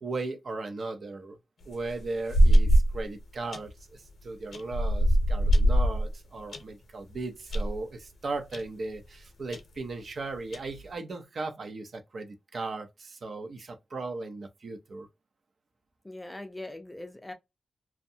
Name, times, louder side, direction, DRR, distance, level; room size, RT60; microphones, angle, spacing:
voice 1, 0.0-1.4 1.6-15.1, right 3 dB, 50° right, 0.5 m, -37 dB
sound 1, 1.6-3.0 3.5-3.8 4.5-6.6 7.1-7.2 7.5-7.8 8.5-8.6 8.9-9.0 9.5-9.6 10.3-10.8, equal, 70° left, 0.7 m, -22 dB
voice 2, 16.0-17.3, left 1 dB, 10° left, 0.4 m, -41 dB
2.6 x 2.1 x 2.7 m
wide cardioid pair, 170°, 0 cm